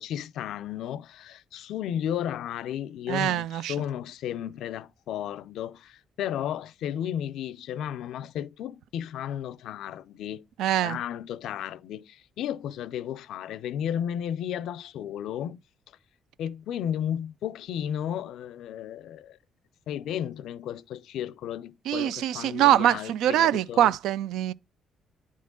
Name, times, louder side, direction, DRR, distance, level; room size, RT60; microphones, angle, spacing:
voice 1, 0.0-10.4 10.8-15.6 16.4-19.4 19.9-23.9, left 10 dB, 80° left, 0.4 m, -33 dB
voice 2, 3.1-3.8 10.6-11.0 21.9-24.5, right 12 dB, 85° right, 0.3 m, -23 dB
9.6 x 3.7 x 3.7 m
cardioid pair, 90°, 0 cm